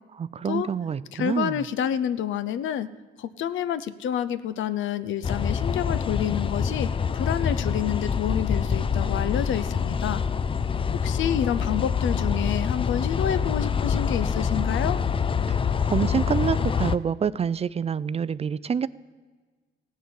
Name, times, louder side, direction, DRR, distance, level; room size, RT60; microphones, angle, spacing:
voice 1, 0.2-1.6 15.5-18.9, right 7 dB, 30° right, 17 dB, 0.4 m, -27 dB
voice 2, 1.1-2.9 3.2-10.2 11.0-15.0, left 9 dB, 75° left, 14 dB, 0.7 m, -28 dB
sound 1, 5.2-17.0, left 6 dB, 25° left, 0.4 m, -26 dB
16.0 x 6.4 x 6.9 m, 1.4 s
cardioid pair, 90°, 20 cm